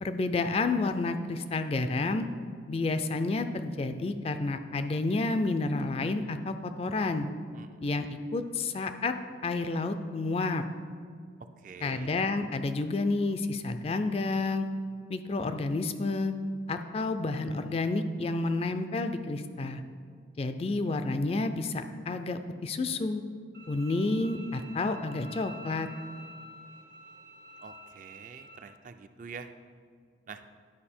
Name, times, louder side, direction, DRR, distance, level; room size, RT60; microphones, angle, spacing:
voice 1, 0.0-2.3 2.7-7.3 7.8-9.1 9.4-10.6 11.8-14.7 15.1-16.3 16.7-19.8 20.4-23.2 23.7-25.9, left 3 dB, 30° left, 9 dB, 0.3 m, -30 dB
voice 2, 11.4-12.1 27.6-29.5 30.3-30.5, right 5 dB, 45° right, 9 dB, 0.3 m, -46 dB
Bowed string instrument, 23.5-28.6, right 1 dB, 80° right, 1.5 m, -49 dB
11.0 x 5.0 x 4.3 m, 2.1 s
head